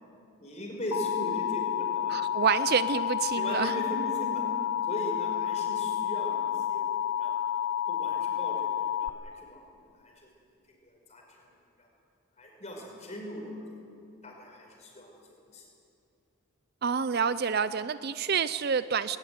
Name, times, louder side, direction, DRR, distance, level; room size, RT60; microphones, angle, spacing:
voice 1, 0.4-2.4 3.3-4.5 4.8-7.4 7.9-9.6 9.9-10.3 10.8-11.5 11.8-11.9 12.4-13.8 14.2-15.1 15.5-15.7, equal, 30° left, 1 dB, 5.0 m, -39 dB
Alarm, 0.9-9.1, left 10 dB, 80° left, 0.7 m, -30 dB
voice 2, 2.1-3.7 16.8-19.2, right 6 dB, 45° right, 15 dB, 0.5 m, -28 dB
20.5 x 19.5 x 9.5 m, 2.6 s
head